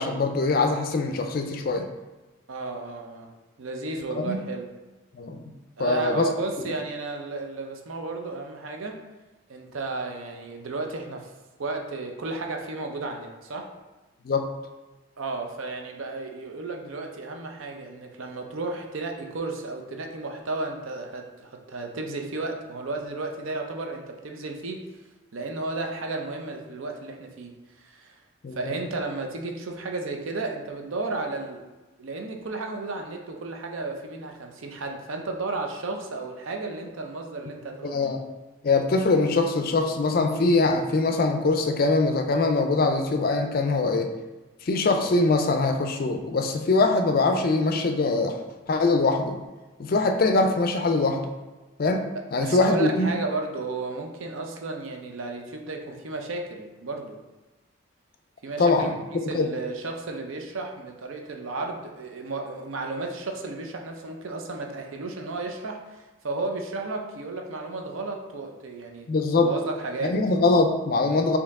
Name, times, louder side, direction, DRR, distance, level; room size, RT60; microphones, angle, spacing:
voice 1, 0.0-1.9 4.1-4.4 5.1-5.4 5.8-6.3 14.2-14.5 28.4-28.7 37.8-38.2 38.6-44.1 44.6-48.4 48.7-49.4 49.8-51.3 51.8-53.1 58.6-58.9 59.2-59.5 69.1-69.5 70.0-71.4, left 3 dB, 45° left, 6 dB, 0.4 m, -23 dB
voice 2, 2.5-3.3 3.6-4.7 5.8-9.0 9.5-11.3 11.6-13.7 15.2-24.8 25.3-28.1 28.5-31.6 32.0-38.1 52.4-57.2 58.4-59.0 59.3-69.1 69.4-70.2, right 3 dB, 75° right, 3 dB, 0.6 m, -33 dB
4.5 x 2.9 x 3.5 m, 1.1 s
head